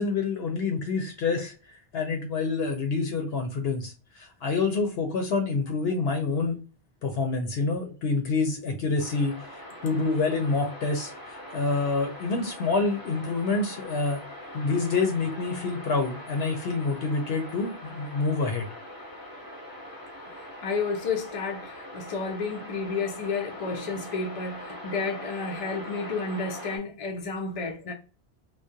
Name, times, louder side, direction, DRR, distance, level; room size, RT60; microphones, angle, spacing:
voice 1, 0.0-6.6 7.0-14.2 14.5-18.7, left 4 dB, 70° left, 0.8 m, -27 dB
sound 1, 9.0-26.8, left 1 dB, 20° left, 0.8 m, -42 dB
voice 2, 20.3-27.9, left 4 dB, 50° left, 0.4 m, -31 dB
2.3 x 2.1 x 2.6 m
omnidirectional pair, 1.1 m